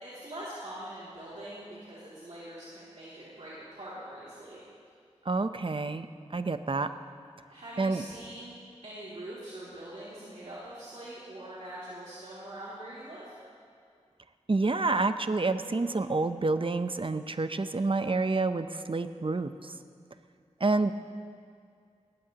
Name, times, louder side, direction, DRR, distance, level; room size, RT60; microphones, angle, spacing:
voice 1, 0.0-4.6 7.5-8.5 8.8-13.3, right 1 dB, 65° right, -9 dB, 2.7 m, -43 dB
voice 2, 5.3-6.1 6.3-6.9 7.8-8.0 14.5-19.7 20.6-20.9, right 3 dB, 45° right, 10 dB, 0.7 m, -28 dB
19.5 x 15.5 x 2.9 m, 2.3 s
wide cardioid pair, 40°, 12 cm